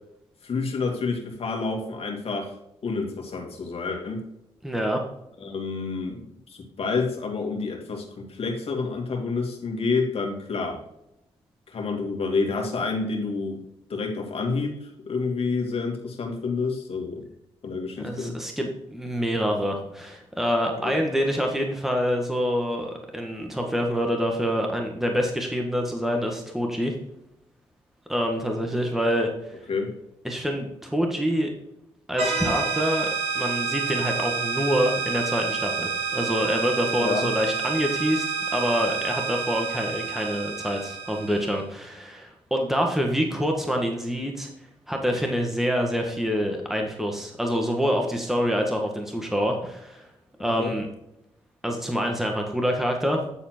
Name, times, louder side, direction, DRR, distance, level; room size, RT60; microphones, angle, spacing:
voice 1, 0.4-2.5 2.8-4.2 5.4-10.8 11.7-13.6 13.9-17.2 17.6-18.4 20.8-20.9 29.7-29.9 36.9-37.3 50.6-50.7, left 4 dB, 60° left, 2 dB, 2.3 m, -29 dB
voice 2, 4.6-5.0 18.0-26.9 28.1-29.6 30.2-31.5 32.1-33.1 33.3-44.5 44.9-50.1 50.4-50.9 51.6-53.2, equal, 5° right, 2 dB, 1.6 m, -26 dB
sound 1, 32.2-41.6, right 5 dB, 65° right, 2.7 m, -29 dB
10.0 x 4.2 x 4.5 m, 0.82 s
cardioid pair, 60°, 11 cm